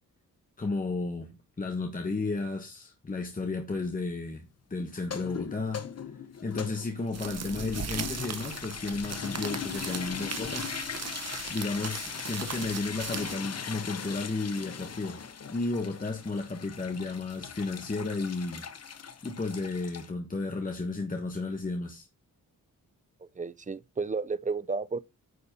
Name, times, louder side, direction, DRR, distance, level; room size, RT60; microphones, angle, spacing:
voice 1, 0.6-1.3 1.6-4.4 4.7-5.8 6.4-10.7 11.5-15.2 15.5-18.7 19.2-22.1, left 3 dB, 25° left, 1.3 m, -33 dB
sound 1, 5.0-20.1, left 7 dB, 50° left, 1.0 m, -39 dB
sound 2, 7.1-13.4, right 6 dB, 50° right, 1.0 m, -39 dB
voice 2, 23.2-25.0, right 4 dB, 25° right, 0.4 m, -32 dB
9.6 x 4.2 x 5.2 m
wide cardioid pair, 160°, 33 cm